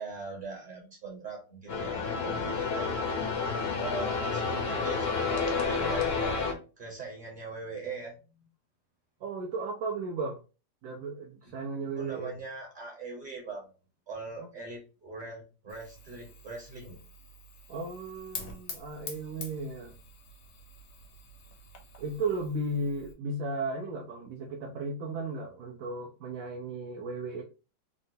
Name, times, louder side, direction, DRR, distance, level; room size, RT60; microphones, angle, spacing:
voice 1, 0.0-2.9 3.6-6.4 6.8-8.2 12.0-13.7 14.1-17.0, right 4 dB, 35° right, -1 dB, 0.9 m, -41 dB
sound 1, 1.7-6.5, left 4 dB, 55° left, 0.7 m, -30 dB
voice 2, 9.2-10.4 10.8-12.3 14.4-14.5 17.7-20.0 22.0-27.4, right 2 dB, 70° right, 0 dB, 0.9 m, -35 dB
Fire, 15.7-23.1, left 4 dB, 75° left, 1.3 m, -47 dB
3.6 x 2.1 x 2.6 m, 0.33 s
omnidirectional pair, 1.8 m